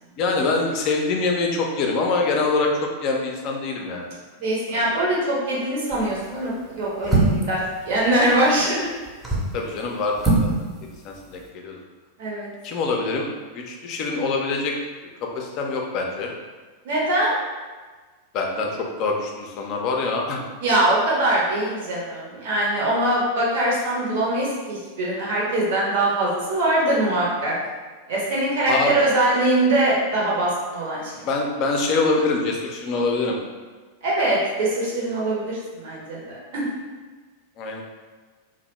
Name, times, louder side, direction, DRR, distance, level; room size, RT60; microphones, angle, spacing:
voice 1, 0.2-4.0 4.7-4.8 9.5-10.5 11.0-11.8 12.6-13.3 13.5-14.8 15.2-16.3 18.3-20.4 28.7-28.9 31.2-33.4 37.6-37.8, left 3 dB, 40° left, 1 dB, 0.4 m, -24 dB
voice 2, 4.4-7.6 7.8-8.9 12.2-12.5 16.8-17.4 20.6-27.5 28.1-31.2 34.0-36.7, right 1 dB, 50° right, -5 dB, 0.7 m, -22 dB
sound 1, 5.9-6.2 7.0-7.6 9.1-9.6 10.2-10.6 10.8-10.9, right 2 dB, 10° right, 0.6 m, -21 dB
2.7 x 2.0 x 3.0 m, 1.4 s
figure-of-eight pair, 90°, 0 cm